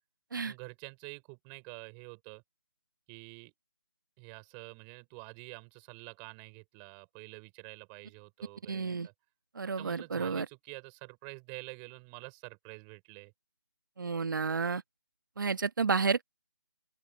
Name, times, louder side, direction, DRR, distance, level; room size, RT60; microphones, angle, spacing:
voice 1, 0.4-2.4 3.1-3.5 4.2-9.1 9.8-13.3, right 35 dB, 15° right, 6.4 m, -48 dB
voice 2, 8.7-9.1 9.5-10.4 14.0-14.8 15.4-16.2, right 5 dB, 55° right, 1.6 m, -31 dB
open air
hypercardioid pair, 170°, 13 cm